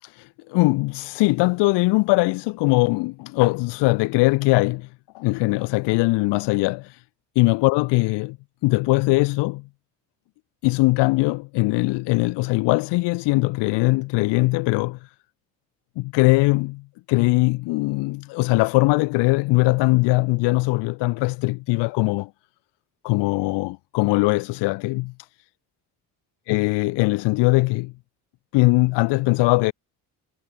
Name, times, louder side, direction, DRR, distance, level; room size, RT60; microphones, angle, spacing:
voice 1, 0.0-4.9 5.1-7.0 7.3-8.4 8.6-9.6 10.6-15.1 16.0-16.8 17.1-22.3 23.0-25.1 26.5-27.9 28.5-29.7, left 23 dB, 80° left, 1.7 m, -21 dB
supercardioid pair, 70°, 41 cm